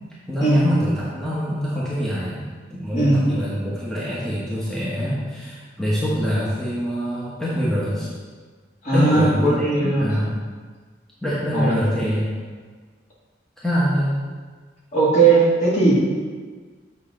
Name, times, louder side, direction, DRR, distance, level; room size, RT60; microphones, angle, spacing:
voice 1, 0.3-8.1 8.9-10.3 11.2-12.4 13.6-14.2, equal, 5° left, -9 dB, 1.2 m, -24 dB
voice 2, 8.8-10.1 11.5-11.7 14.9-15.9, right 3 dB, 40° left, -7 dB, 2.2 m, -18 dB
7.9 x 5.7 x 3.8 m, 1.5 s
head